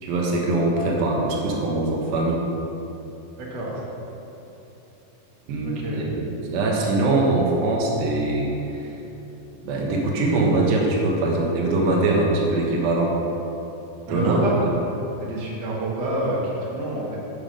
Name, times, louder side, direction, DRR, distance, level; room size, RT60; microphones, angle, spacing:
voice 1, 0.0-2.4 5.5-6.2 6.5-9.0 9.6-13.1 14.1-14.5, right 2 dB, 75° right, -2 dB, 3.0 m, -22 dB
voice 2, 3.4-3.8 4.0-4.1 5.7-6.0 14.1-14.6 15.2-17.2, right 1 dB, 55° right, -4 dB, 1.2 m, -27 dB
8.0 x 7.2 x 5.1 m, 3.0 s
omnidirectional pair, 4.2 m